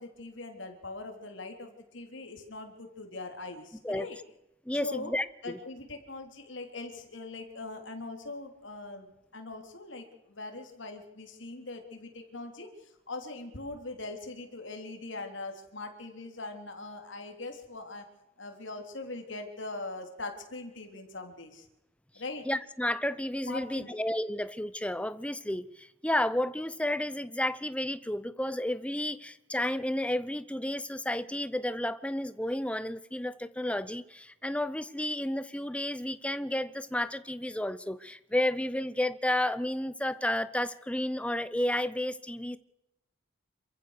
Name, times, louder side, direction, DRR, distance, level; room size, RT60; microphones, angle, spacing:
voice 1, 0.0-4.2 4.8-5.1 5.4-18.1 18.4-21.7 22.1-22.5 23.5-24.0, left 2 dB, 65° left, 4 dB, 3.5 m, -41 dB
voice 2, 4.7-5.6 22.4-42.6, left 1 dB, 5° left, 15 dB, 0.7 m, -32 dB
27.0 x 15.0 x 6.6 m, 0.93 s
head